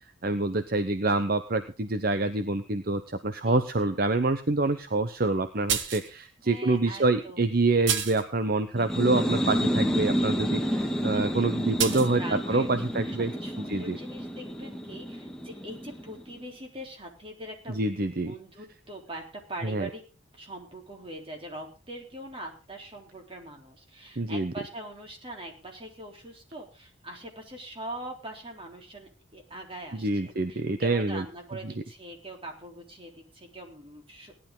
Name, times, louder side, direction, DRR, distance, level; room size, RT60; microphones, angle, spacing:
voice 1, 0.2-13.3 13.7-14.0 17.7-18.3 19.6-19.9 24.2-24.5 29.9-31.2, right 2 dB, 50° right, 10 dB, 0.9 m, -26 dB
voice 2, 3.5-3.9 6.4-7.5 11.9-13.0 13.4-17.8 18.3-20.0 20.3-34.3, right 1 dB, 30° right, 1 dB, 3.7 m, -42 dB
sound 1, 5.7-6.1 6.9-7.0 7.9-8.3 11.8-12.1, right 8 dB, 75° right, 1.6 m, -28 dB
sound 2, 8.8-16.3, equal, 5° left, 1.8 m, -29 dB
18.0 x 11.0 x 3.9 m, 0.35 s
head